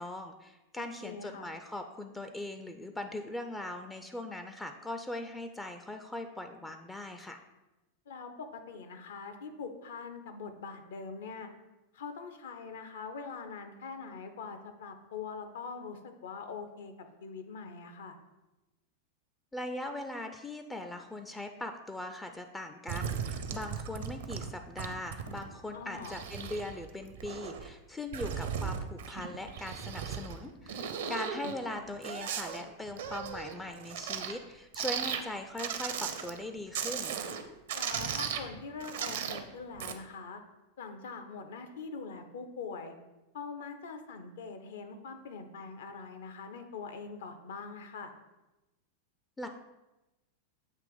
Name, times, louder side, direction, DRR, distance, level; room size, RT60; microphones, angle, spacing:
voice 1, 0.0-7.4 19.5-37.2 49.4-49.5, left 1 dB, 10° left, 6 dB, 0.4 m, -40 dB
voice 2, 0.8-1.5 8.1-11.5 11.9-18.2 25.7-26.2 31.1-31.2 37.7-40.4 40.8-42.9 43.3-48.1, left 5 dB, 60° left, 7 dB, 0.7 m, -43 dB
sound 1, 22.9-24.5 24.8-25.4 25.8-27.7 28.1-30.4 30.7-34.4 34.7-35.2 35.6-36.4 36.7-37.4 37.7-39.4 39.8-39.9, right 7 dB, 55° right, 0.5 m, -37 dB
7.6 x 3.0 x 5.0 m, 1.0 s
figure-of-eight pair, 90°, 0 cm